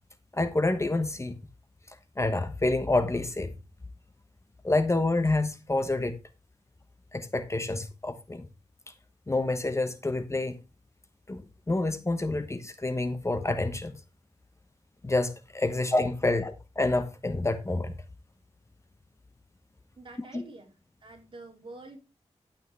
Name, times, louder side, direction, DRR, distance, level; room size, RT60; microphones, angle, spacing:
voice 1, 0.3-1.4 2.2-3.5 4.6-6.1 7.1-8.5 9.3-10.6 11.3-11.4 11.7-14.0 15.0-17.9, left 2 dB, 25° left, 1.1 m, -28 dB
voice 2, 20.0-20.7 21.0-22.0, right 2 dB, 45° right, 4.1 m, -46 dB
12.5 x 8.7 x 3.4 m
wide cardioid pair, 100°, 11 cm